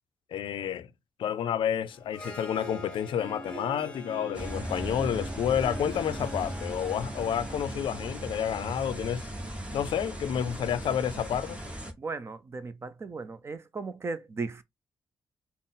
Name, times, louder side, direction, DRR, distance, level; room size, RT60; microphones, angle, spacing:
voice 1, 0.3-0.9 1.2-9.3 9.7-11.6, left 9 dB, 80° left, 0.4 m, -30 dB
Harp, 1.9-9.0, equal, 15° left, 1.2 m, -44 dB
sound 1, 4.3-11.9, right 1 dB, 15° right, 0.9 m, -37 dB
voice 2, 12.0-14.6, right 4 dB, 30° right, 0.4 m, -36 dB
4.0 x 2.0 x 3.8 m
wide cardioid pair, 130°, 9 cm